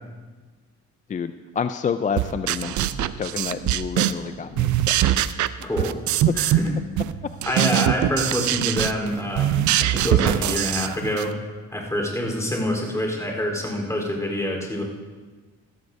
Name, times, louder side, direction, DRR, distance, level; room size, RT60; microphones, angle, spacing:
voice 1, 1.1-5.1 5.6-5.9 6.3-6.4, left 6 dB, 25° left, 11 dB, 0.4 m, -29 dB
sound 1, 2.2-4.3 4.6-6.7 7.0-11.3, right 13 dB, 75° right, 0.5 m, -22 dB
voice 2, 5.6-6.0 6.4-6.7 7.5-11.3 11.7-14.8, equal, 10° left, 0 dB, 3.9 m, -26 dB
15.5 x 14.0 x 2.7 m, 1.4 s
cardioid pair, 90°, 30 cm